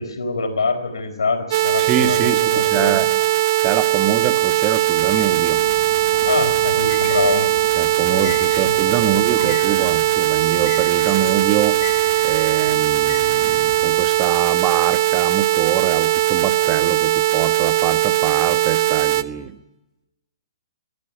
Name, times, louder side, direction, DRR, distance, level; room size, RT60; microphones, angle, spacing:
voice 1, 0.0-3.0 6.2-7.5 8.0-8.3 8.6-8.8 9.0-9.1 9.4-9.6, left 4 dB, 85° left, 7 dB, 4.4 m, -25 dB
sound 1, 1.5-19.2, right 15 dB, 45° right, 0.8 m, -19 dB
voice 2, 1.8-3.1 3.6-5.6 7.8-11.8 12.2-19.6, right 10 dB, 25° right, 11 dB, 1.3 m, -25 dB
Bird, 5.0-14.1, left 7 dB, 50° left, 5.9 m, -36 dB
22.5 x 13.5 x 10.0 m, 0.98 s
hypercardioid pair, 140°, 2 cm